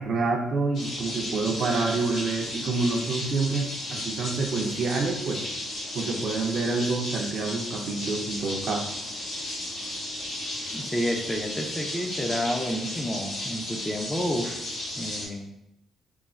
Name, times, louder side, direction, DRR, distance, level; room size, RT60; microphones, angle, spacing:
voice 1, 0.0-5.4 5.9-8.9, right 3 dB, 60° right, 2 dB, 0.4 m, -27 dB
sound 1, 0.7-15.3, left 1 dB, 90° left, 1.0 m, -34 dB
voice 2, 10.7-14.6 15.0-15.5, equal, 10° left, 3 dB, 0.4 m, -30 dB
3.2 x 2.1 x 2.3 m, 0.85 s
cardioid pair, 90°, 0 cm